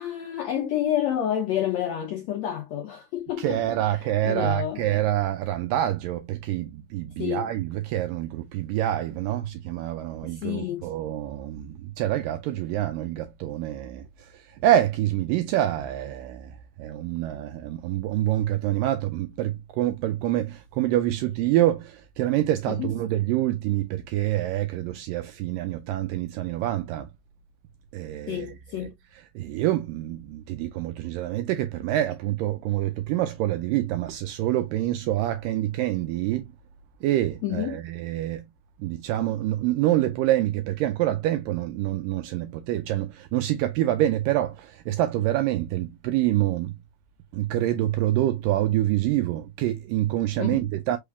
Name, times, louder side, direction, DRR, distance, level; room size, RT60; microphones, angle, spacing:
voice 1, 0.0-3.6 4.2-4.8 7.2-7.5 10.2-10.9 22.7-22.9 28.3-28.9 37.4-37.8 50.4-50.7, left 11 dB, 85° left, 1.5 m, -29 dB
voice 2, 3.4-27.1 27.9-28.5 28.8-28.9 29.4-36.5 37.0-38.5 38.8-46.8 47.3-51.0, right 13 dB, 80° right, 2.0 m, -26 dB
5.5 x 3.4 x 2.3 m
omnidirectional pair, 4.2 m